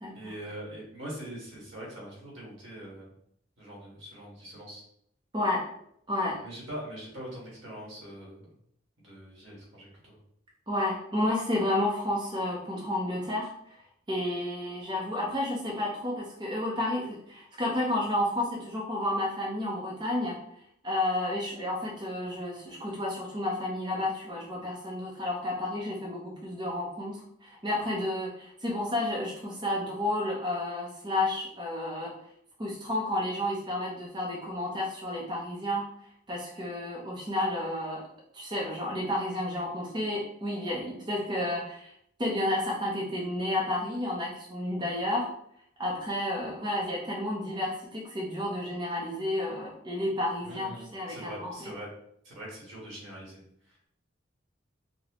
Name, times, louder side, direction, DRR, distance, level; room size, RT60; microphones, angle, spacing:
voice 1, 0.1-3.1 3.6-4.8 6.4-8.5 9.0-10.2 50.4-51.9 52.2-53.4 53.7-53.9, right 1 dB, 75° right, -4 dB, 1.4 m, -43 dB
voice 2, 5.3-5.7 6.1-6.4 10.7-13.8 14.1-20.4 20.8-32.1 32.6-35.8 36.3-38.1 38.3-41.9 42.2-45.3 45.8-51.7, left 1 dB, 25° right, -4 dB, 0.6 m, -31 dB
4.0 x 2.1 x 2.9 m, 0.71 s
head